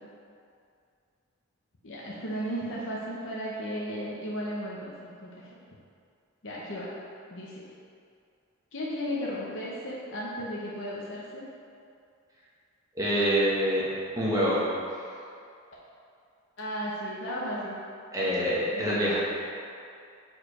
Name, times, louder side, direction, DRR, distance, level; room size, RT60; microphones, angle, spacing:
voice 1, 1.8-5.3 6.4-6.9 7.3-7.6 8.7-11.4 16.6-17.8 18.2-18.4 18.7-19.1, equal, 60° left, -6 dB, 0.8 m, -35 dB
voice 2, 12.9-13.8 14.2-14.7 18.1-19.2, equal, 15° right, -7 dB, 1.2 m, -25 dB
4.7 x 4.6 x 4.9 m, 2.4 s
head